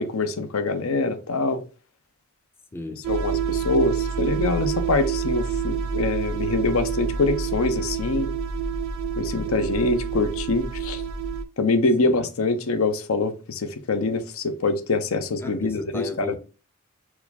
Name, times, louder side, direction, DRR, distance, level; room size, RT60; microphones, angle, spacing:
voice 1, 0.0-1.6 3.1-8.3 9.2-11.0 11.6-16.3, left 3 dB, 85° left, 0.6 m, -24 dB
voice 2, 2.7-3.1 12.0-12.2 15.4-16.4, left 3 dB, 10° left, 0.4 m, -33 dB
sound 1, 3.0-11.4, right 6 dB, 75° right, 0.4 m, -28 dB
4.6 x 2.3 x 4.0 m
head